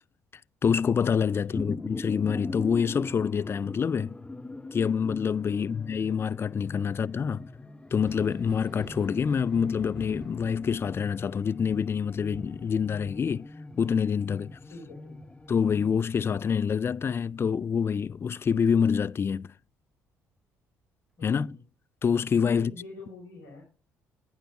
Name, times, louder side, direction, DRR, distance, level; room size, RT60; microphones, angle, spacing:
voice 1, 0.6-4.2 4.7-7.5 7.9-13.5 13.8-14.6 15.5-19.5 21.2-21.5 22.0-22.7, left 6 dB, 35° left, 0.3 m, -26 dB
voice 2, 1.2-1.7 5.4-5.7 14.7-15.3 21.2-21.6 22.4-23.6, left 2 dB, 75° left, 4.9 m, -46 dB
sound 1, 1.2-15.9, left 2 dB, 15° left, 0.9 m, -42 dB
Thunder, 7.9-17.2 17.6-18.8 20.4-20.5 21.2-21.4, right 1 dB, 10° right, 2.9 m, -49 dB
12.0 x 9.0 x 2.5 m
hypercardioid pair, 55°, 7 cm